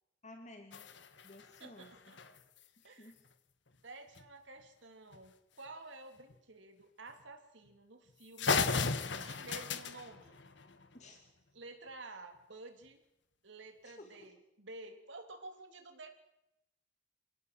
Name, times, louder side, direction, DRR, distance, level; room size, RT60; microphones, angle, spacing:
voice 1, 0.2-0.8 1.2-1.9 2.8-3.2 10.9-11.2 13.8-14.3, left 1 dB, 35° left, 4 dB, 2.4 m, -54 dB
sound 1, 0.7-2.7 4.1-4.2 4.6-4.7 5.1-5.3 6.2-6.3 7.1-7.2 7.7-7.8 8.1-8.2 8.4-11.1, left 4 dB, 65° left, 1.5 m, -36 dB
voice 2, 1.6-2.2 2.8-3.1 3.8-8.6 9.1-10.4 11.5-13.0 13.4-16.1, right 2 dB, 70° right, 6 dB, 3.3 m, -51 dB
28.0 x 17.5 x 7.7 m, 0.88 s
head